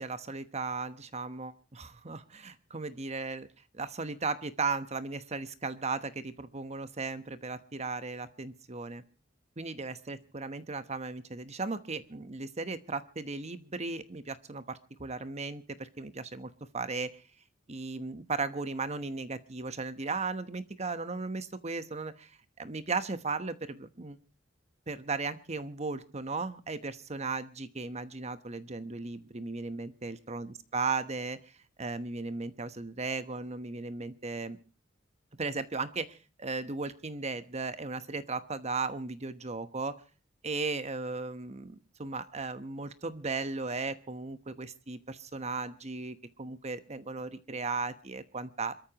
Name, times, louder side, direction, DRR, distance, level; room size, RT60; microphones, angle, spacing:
voice 1, 0.0-3.5 3.7-9.0 9.6-17.2 17.7-22.3 22.6-24.2 24.9-31.4 31.8-34.6 35.4-40.0 40.4-48.7, right 4 dB, 35° right, 12 dB, 1.1 m, -36 dB
26.5 x 14.0 x 3.0 m, 0.35 s
head